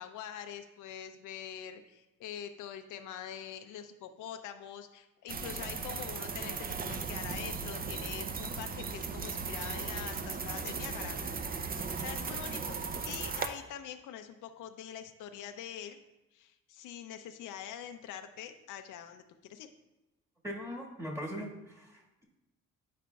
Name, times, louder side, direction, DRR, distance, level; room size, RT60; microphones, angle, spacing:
voice 1, 0.0-11.2 12.0-16.0 16.3-19.2 19.5-19.7, left 9 dB, 80° left, 7 dB, 0.5 m, -44 dB
sound 1, 5.3-13.5, right 5 dB, 30° right, 0.5 m, -37 dB
voice 2, 20.4-22.2, equal, 10° right, -3 dB, 1.7 m, -40 dB
9.4 x 5.0 x 2.3 m, 0.98 s
cardioid pair, 90°, 30 cm